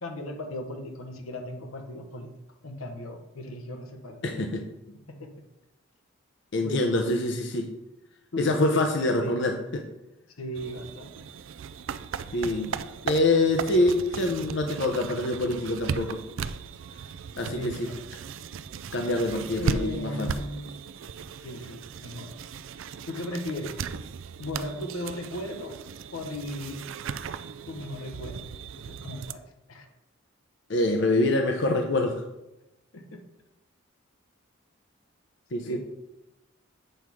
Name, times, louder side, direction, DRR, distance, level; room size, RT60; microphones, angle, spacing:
voice 1, 0.0-2.3 2.6-4.4 5.1-5.3 6.6-6.9 8.3-9.4 10.4-11.1 17.4-17.9 19.5-20.7 21.4-22.3 23.1-23.8 24.4-25.8 26.1-26.9 27.7-28.5 28.8-29.4 29.7-29.9 32.9-33.2 35.6-35.8, left 1 dB, 90° left, 4 dB, 1.0 m, -36 dB
voice 2, 4.2-4.6 6.5-7.7 8.4-9.8 12.3-16.2 17.4-17.9 18.9-20.3 30.7-32.2 35.5-35.8, left 2 dB, 60° left, 4 dB, 0.6 m, -25 dB
sound 1, 10.5-29.3, right 6 dB, 70° right, 0.4 m, -37 dB
7.9 x 3.5 x 6.1 m, 0.93 s
head